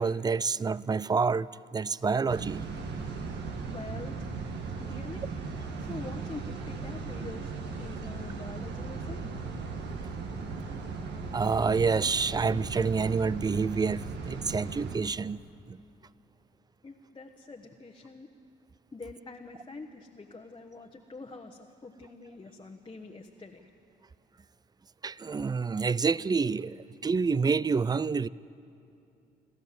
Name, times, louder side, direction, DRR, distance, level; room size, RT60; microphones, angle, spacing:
voice 1, 0.0-2.7 11.3-15.4 15.7-15.8 25.0-28.3, right 5 dB, 20° right, 0.4 m, -28 dB
sound 1, 2.3-15.0, right 4 dB, 75° right, 1.8 m, -37 dB
voice 2, 3.6-4.4 4.8-5.2 5.8-7.5 7.8-9.2 16.8-18.3 18.9-23.7, left 3 dB, 25° left, 1.3 m, -45 dB
28.0 x 13.0 x 7.6 m
supercardioid pair, 65°, 18 cm